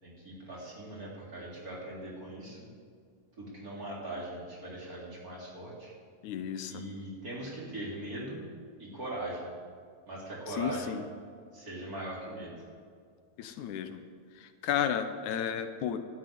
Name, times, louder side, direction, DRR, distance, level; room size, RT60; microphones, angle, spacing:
voice 1, 0.0-2.7 3.4-5.9 6.7-8.4 8.8-9.5 10.1-11.0 11.5-12.6, right 1 dB, 30° right, -5 dB, 4.0 m, -40 dB
voice 2, 6.2-6.8 10.5-11.1 13.4-14.0 14.4-16.0, left 9 dB, 80° left, 9 dB, 2.2 m, -33 dB
12.5 x 9.7 x 9.3 m, 2.1 s
omnidirectional pair, 3.4 m